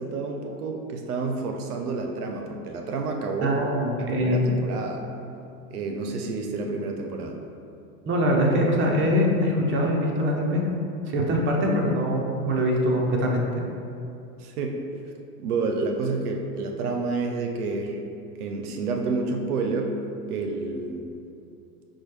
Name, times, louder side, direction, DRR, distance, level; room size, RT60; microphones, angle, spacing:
voice 1, 0.0-3.6 4.0-5.0 5.7-7.4 14.4-14.8 15.4-18.0 18.4-20.0 20.3-21.0, right 3 dB, 90° right, 3 dB, 0.5 m, -29 dB
voice 2, 3.4-4.6 8.1-10.6 11.1-13.5, equal, 25° right, -1 dB, 0.7 m, -23 dB
6.1 x 2.2 x 3.0 m, 2.6 s
hypercardioid pair, 95°, 44 cm